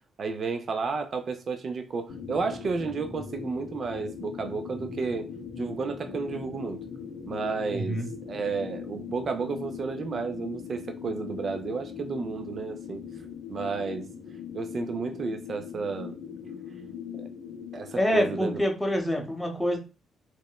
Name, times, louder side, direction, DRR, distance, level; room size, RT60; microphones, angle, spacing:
voice 1, 0.2-5.3 5.6-6.8 7.3-13.0 13.5-14.1 14.5-16.2 17.2-17.3 17.7-18.6, right 4 dB, 50° right, 0.4 m, -32 dB
sound 1, 2.1-18.6, left 7 dB, 85° left, 0.5 m, -40 dB
voice 2, 7.7-8.1 17.9-19.8, equal, 5° left, 0.7 m, -26 dB
3.0 x 2.0 x 2.2 m
cardioid pair, 90°, 0 cm